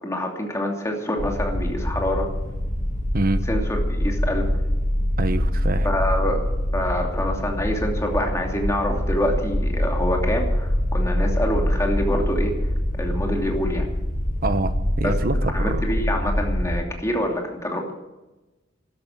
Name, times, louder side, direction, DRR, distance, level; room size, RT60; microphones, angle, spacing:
voice 1, 0.0-2.3 3.5-4.5 5.8-6.4 6.7-12.5 12.9-13.9 15.0-15.2 15.5-17.9, left 1 dB, 15° left, 1 dB, 2.8 m, -26 dB
sound 1, 1.2-16.8, equal, 45° left, 2.0 m, -24 dB
voice 2, 5.2-5.9 14.4-15.8, right 2 dB, 50° right, 11 dB, 1.1 m, -25 dB
13.0 x 12.0 x 7.5 m, 1.1 s
head